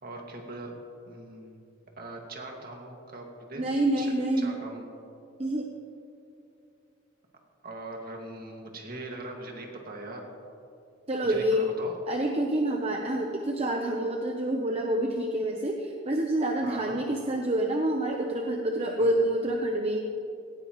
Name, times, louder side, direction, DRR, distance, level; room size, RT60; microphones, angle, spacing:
voice 1, 0.0-0.8 1.1-1.6 2.0-4.8 7.6-10.2 11.2-11.9 16.6-17.0 19.0-19.1, right 2 dB, 50° right, 1 dB, 2.2 m, -41 dB
voice 2, 3.6-4.6 5.4-5.7 11.1-11.7 12.1-20.0, right 1 dB, 35° right, 2 dB, 0.8 m, -27 dB
17.5 x 16.5 x 3.2 m, 2.6 s
head